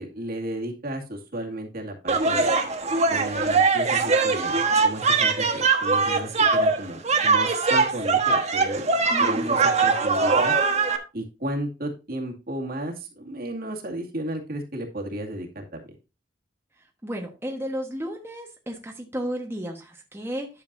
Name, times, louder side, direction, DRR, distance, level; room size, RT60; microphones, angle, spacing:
voice 1, 0.0-2.5 3.0-8.9 9.2-10.5 11.1-15.8, right 1 dB, 55° right, 2.3 m, -33 dB
sound 1, 2.1-11.0, right 4 dB, 40° right, 1.3 m, -21 dB
voice 2, 9.1-9.6 17.0-20.5, equal, 15° right, 1.3 m, -33 dB
11.0 x 7.1 x 2.7 m
head